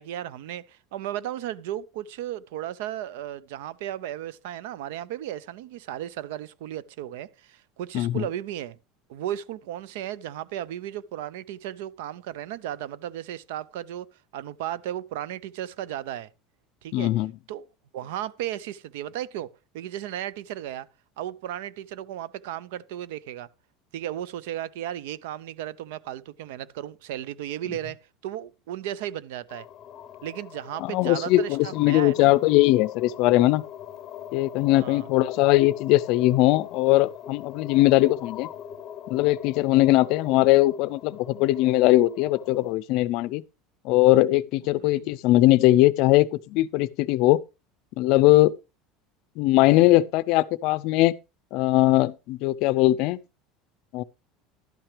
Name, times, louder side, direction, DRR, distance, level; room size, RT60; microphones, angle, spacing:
voice 1, 0.0-8.8 9.1-16.3 16.8-17.1 17.5-17.7 17.9-20.9 21.2-23.5 23.9-29.7 30.2-32.3 34.7-35.1 44.8-45.1, right 12 dB, 85° right, 0.5 m, -35 dB
voice 2, 16.9-17.3 30.8-33.6 34.3-38.5 39.1-43.4 43.8-47.4 48.0-48.5 49.4-51.1 51.5-53.2 53.9-54.0, left 17 dB, 50° left, 0.5 m, -20 dB
sound 1, 29.5-42.7, left 9 dB, 25° left, 0.8 m, -42 dB
11.5 x 8.9 x 3.3 m
cardioid pair, 170°, 0 cm